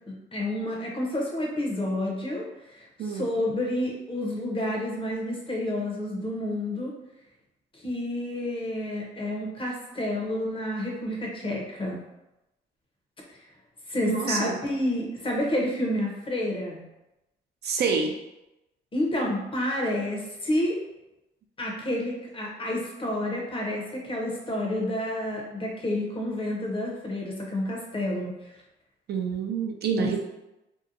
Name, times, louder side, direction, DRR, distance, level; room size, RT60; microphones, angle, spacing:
voice 1, 0.1-6.9 7.7-12.0 13.9-16.8 18.9-20.8 21.6-28.5 30.0-30.2, left 1 dB, 25° left, -1 dB, 0.7 m, -29 dB
voice 2, 14.0-14.6 17.6-18.2 29.1-30.2, right 5 dB, 55° right, 2 dB, 0.4 m, -27 dB
2.7 x 2.1 x 2.6 m, 0.95 s
cardioid pair, 90°, 20 cm